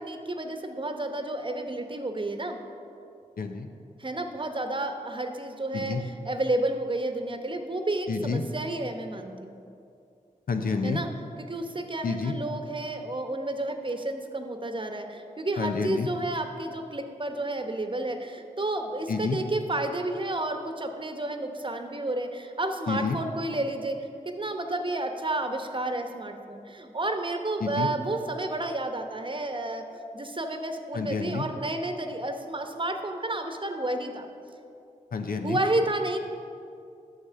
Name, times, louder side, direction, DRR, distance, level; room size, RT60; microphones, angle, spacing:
voice 1, 0.0-2.6 4.0-9.6 10.8-11.1 11.4-29.8 30.1-34.3 35.4-36.2, right 2 dB, 35° right, 6 dB, 1.0 m, -31 dB
voice 2, 3.4-3.7 5.7-6.0 8.1-8.4 10.5-11.0 12.0-12.3 15.6-16.1 19.1-19.4 22.9-23.2 27.6-27.9 30.9-31.5 35.1-35.6, left 4 dB, 75° left, 6 dB, 0.7 m, -29 dB
9.7 x 6.7 x 5.7 m, 2.6 s
cardioid pair, 45°, 15 cm